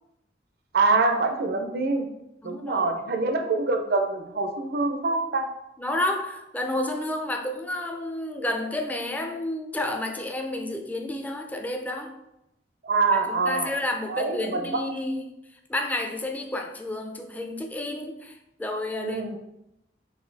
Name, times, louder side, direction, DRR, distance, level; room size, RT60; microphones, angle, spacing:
voice 1, 0.7-2.1 2.4-5.5 12.8-13.7 14.1-14.8 19.0-19.4, right 3 dB, 60° right, 5 dB, 0.6 m, -25 dB
voice 2, 2.4-2.9 5.8-12.1 13.3-15.2 15.7-19.4, left 1 dB, 10° left, 3 dB, 0.4 m, -30 dB
4.1 x 2.7 x 3.9 m, 0.85 s
head